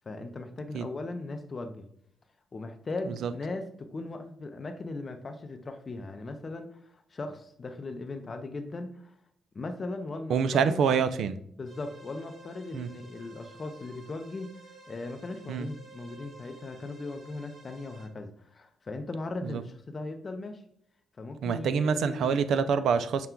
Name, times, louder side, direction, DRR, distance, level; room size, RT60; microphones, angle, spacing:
voice 1, 0.1-1.9 2.5-9.1 9.5-10.8 11.6-14.5 14.9-20.6 21.2-22.4, left 2 dB, 35° left, 0.5 m, -38 dB
voice 2, 10.3-11.4 12.7-12.9 15.5-15.7 19.4-19.6 21.4-23.3, right 6 dB, 75° right, 0.3 m, -26 dB
sound 1, 11.6-18.1, right 3 dB, 50° right, 1.7 m, -52 dB
5.7 x 2.2 x 3.7 m
cardioid pair, 115°, 0 cm